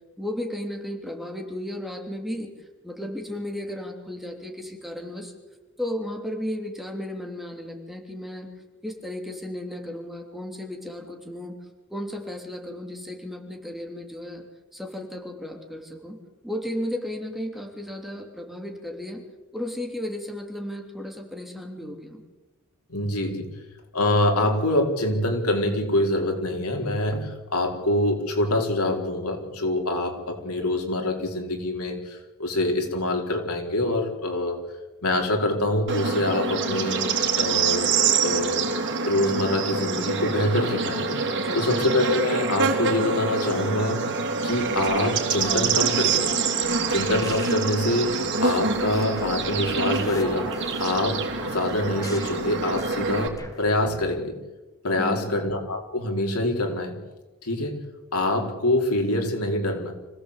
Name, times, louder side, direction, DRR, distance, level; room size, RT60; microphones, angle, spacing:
voice 1, 0.2-2.5 2.8-5.3 5.8-8.5 8.8-11.6 11.9-14.4 14.7-16.2 16.4-19.2 19.5-22.2 41.3-41.7 55.0-55.4, left 1 dB, ahead, 2 dB, 3.1 m, -34 dB
voice 2, 22.9-23.5 23.9-34.6 35.0-37.0 37.4-37.9 38.2-38.7 39.1-41.2 41.5-44.2 44.4-46.4 46.9-48.1 48.4-50.5 50.8-54.3 54.8-57.0 57.4-57.7 58.1-59.9, left 1 dB, 85° left, 2 dB, 4.4 m, -25 dB
Bird / Insect, 35.9-53.3, right 4 dB, 55° right, 3.5 m, -26 dB
sound 1, 44.5-54.1, left 1 dB, 15° left, 2.7 m, -43 dB
26.0 x 17.0 x 8.3 m, 1.1 s
head